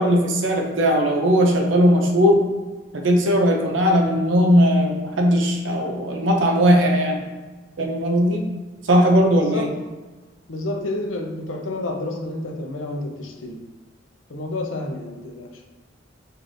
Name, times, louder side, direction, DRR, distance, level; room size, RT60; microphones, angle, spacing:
voice 1, 0.0-2.4 2.9-7.3 7.8-8.5 8.9-9.7, equal, 75° right, 1 dB, 0.7 m, -18 dB
voice 2, 9.3-9.8 10.5-13.7 14.3-15.6, left 2 dB, 85° left, 2 dB, 0.6 m, -30 dB
5.0 x 2.7 x 2.6 m, 1.3 s
head